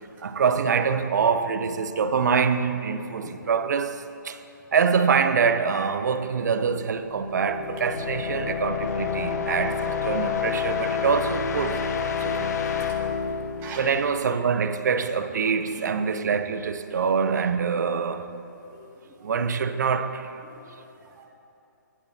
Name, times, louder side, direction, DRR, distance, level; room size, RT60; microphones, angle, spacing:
voice 1, 0.2-4.4 4.7-11.9 12.2-12.5 13.8-18.3 19.2-20.3, right 6 dB, 60° right, 0.6 m, -25 dB
sound 1, 7.0-14.7, left 6 dB, 55° left, 0.9 m, -29 dB
voice 2, 13.3-13.8 18.7-19.4 20.4-21.3, right 5 dB, 20° right, 1.7 m, -46 dB
15.0 x 11.0 x 2.8 m
hypercardioid pair, 145°, 10 cm